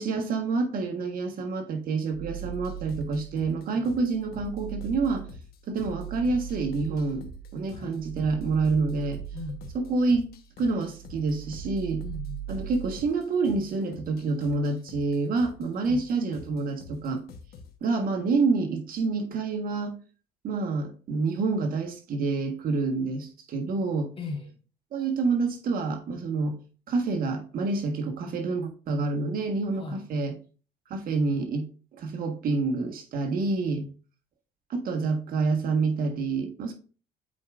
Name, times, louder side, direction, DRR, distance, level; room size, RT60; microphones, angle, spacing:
voice 1, 0.0-5.3 5.7-7.3 7.5-9.2 9.7-10.3 10.6-12.0 12.5-17.2 17.8-19.9 20.4-24.1 24.9-26.6 26.9-30.3 30.9-31.7 31.9-33.8 34.7-36.7, right 3 dB, 60° right, 1.6 m, -27 dB
sound 1, 2.1-3.6 4.0-10.5 10.8-13.1, right 11 dB, 45° right, 3.0 m, -40 dB
sound 2, 2.4-17.8, left 5 dB, 65° left, 1.2 m, -48 dB
voice 2, 9.3-9.8 12.0-12.4 15.8-16.0 24.2-24.5 29.8-30.0 33.8-33.9, left 4 dB, 30° left, 2.2 m, -38 dB
8.3 x 4.7 x 2.6 m
cardioid pair, 110°, 17 cm